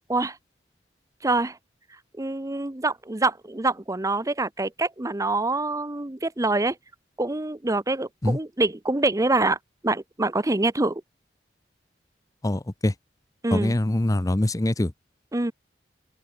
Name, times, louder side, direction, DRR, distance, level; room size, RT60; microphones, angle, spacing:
voice 1, 1.2-1.6 2.2-6.8 7.2-9.6 9.8-11.0 13.4-13.7 15.3-15.5, right 2 dB, 20° right, 0.8 m, -25 dB
voice 2, 12.4-12.9 13.5-14.9, left 1 dB, 20° left, 0.7 m, -23 dB
open air
head